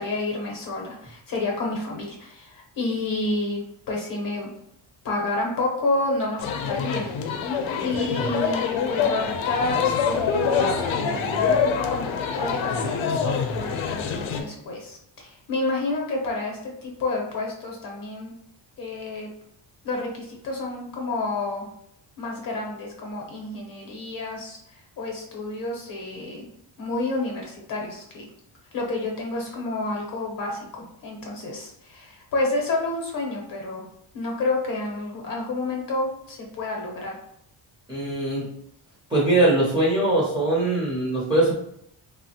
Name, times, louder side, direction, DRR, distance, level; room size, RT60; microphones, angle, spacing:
voice 1, 0.0-4.5 5.0-7.1 7.8-11.6 11.9-12.1 12.3-18.3 18.8-19.3 19.8-21.7 22.2-26.5 26.8-28.3 28.7-33.8 34.1-37.1, left 2 dB, 45° left, 0 dB, 0.7 m, -29 dB
sound 1, 6.4-14.4, left 6 dB, 90° left, 0.6 m, -25 dB
voice 2, 37.9-38.5 39.1-41.6, right 2 dB, 10° right, -7 dB, 0.5 m, -21 dB
3.1 x 2.1 x 2.7 m, 0.74 s
cardioid pair, 175°, 45 cm